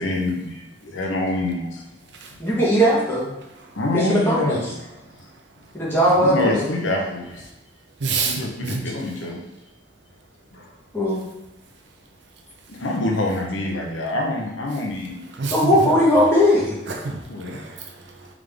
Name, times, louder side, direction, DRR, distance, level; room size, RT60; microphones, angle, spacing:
voice 1, 0.0-1.9 3.7-5.3 6.2-7.5 8.1-9.4 10.5-10.7 12.7-15.2 17.3-17.6, left 2 dB, 90° left, 0 dB, 0.8 m, -26 dB
voice 2, 2.4-3.3 3.9-4.6 5.7-6.7 10.9-11.3 15.5-16.8, equal, 10° left, -8 dB, 1.2 m, -18 dB
voice 3, 8.0-8.8 15.4-15.7 16.9-18.3, right 4 dB, 70° right, 2 dB, 0.6 m, -28 dB
3.6 x 3.6 x 3.4 m, 0.86 s
head